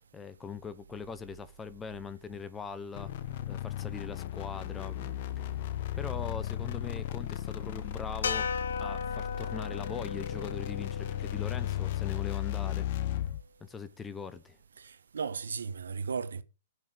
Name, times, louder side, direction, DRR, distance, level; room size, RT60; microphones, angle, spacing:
voice 1, 0.1-3.1 3.5-5.6 6.0-8.5 8.8-12.9 13.6-14.6, left 5 dB, 15° left, 1.0 m, -41 dB
sound 1, 2.9-13.4, left 12 dB, 55° left, 1.1 m, -35 dB
sound 2, 8.2-12.6, left 5 dB, 80° left, 0.9 m, -37 dB
voice 2, 14.8-16.4, right 5 dB, 85° right, 1.2 m, -36 dB
8.6 x 6.8 x 8.5 m
hypercardioid pair, 130°, 0 cm